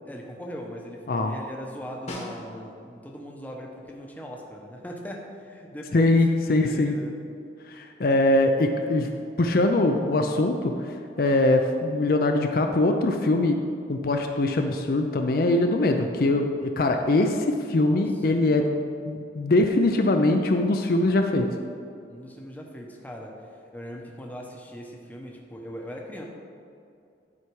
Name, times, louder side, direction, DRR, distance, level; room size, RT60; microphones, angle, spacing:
voice 1, 0.1-7.1 17.8-18.0 22.1-23.4 23.7-26.3, equal, 10° left, 0 dB, 0.8 m, -39 dB
Snare drum, 2.1-3.0 7.4-7.5, left 1 dB, 40° left, 1.2 m, -39 dB
voice 2, 5.9-7.0 7.7-9.1 9.4-10.9 11.2-13.6 13.9-18.8 19.1-21.5, left 2 dB, 55° left, 4 dB, 0.5 m, -22 dB
11.0 x 4.8 x 4.7 m, 2.4 s
head